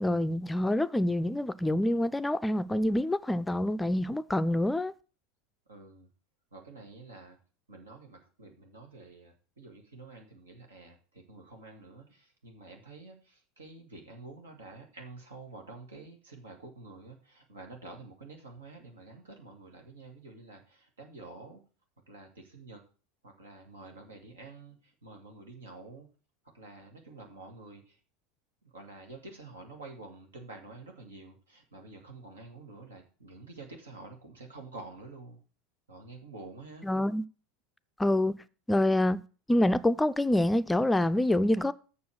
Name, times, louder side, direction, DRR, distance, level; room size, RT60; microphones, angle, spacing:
voice 1, 0.0-4.9 36.8-37.2 38.0-38.4 38.7-39.2 39.5-41.7, left 1 dB, 10° left, 0.5 m, -26 dB
voice 2, 5.7-6.1 6.5-7.4 7.7-21.6 22.1-22.8 23.2-26.1 26.4-28.0 28.6-35.4 35.9-36.9, right 3 dB, 75° right, 2.0 m, -49 dB
7.1 x 6.3 x 6.2 m
figure-of-eight pair, 75°, 0 cm